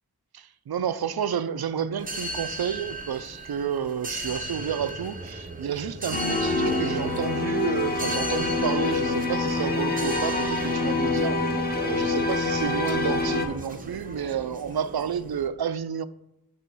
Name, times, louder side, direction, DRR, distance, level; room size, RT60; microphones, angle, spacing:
voice 1, 0.3-11.6 11.8-16.0, right 8 dB, 70° right, 0.5 m, -30 dB
sound 1, 2.0-15.5, right 1 dB, 20° right, 0.7 m, -37 dB
sound 2, 6.1-13.5, left 3 dB, 25° left, 0.9 m, -26 dB
8.4 x 3.1 x 6.1 m
wide cardioid pair, 55°, 39 cm